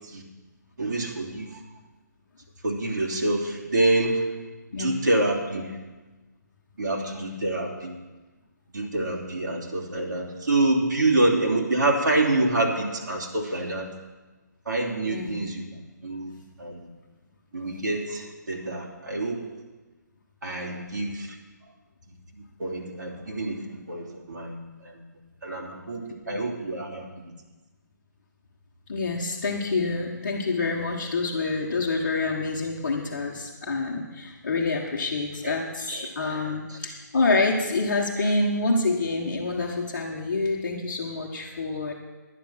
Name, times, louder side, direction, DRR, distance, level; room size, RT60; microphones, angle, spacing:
voice 1, 0.8-1.6 2.6-5.8 6.8-7.9 8.7-13.9 14.7-16.3 16.6-16.9 17.5-19.6 20.4-21.4 22.3-24.6 24.8-25.0 25.4-27.1 35.4-35.5 35.9-36.4, right 2 dB, 70° right, -2 dB, 3.0 m, -27 dB
voice 2, 15.1-15.4 26.2-26.4 28.9-41.9, left 3 dB, 40° left, -4 dB, 1.4 m, -27 dB
11.0 x 10.0 x 5.8 m, 1.2 s
hypercardioid pair, 175°, 10 cm